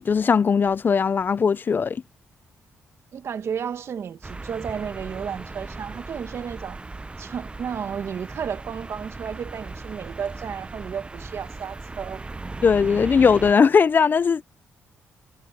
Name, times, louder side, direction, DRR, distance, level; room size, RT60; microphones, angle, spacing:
voice 1, 0.0-2.0 12.6-14.4, left 6 dB, 40° left, 0.4 m, -19 dB
voice 2, 3.1-6.8 7.2-12.3, right 7 dB, 60° right, 1.5 m, -33 dB
sound 1, 4.2-13.5, right 3 dB, 20° right, 0.6 m, -37 dB
cardioid pair, 75°, 5 cm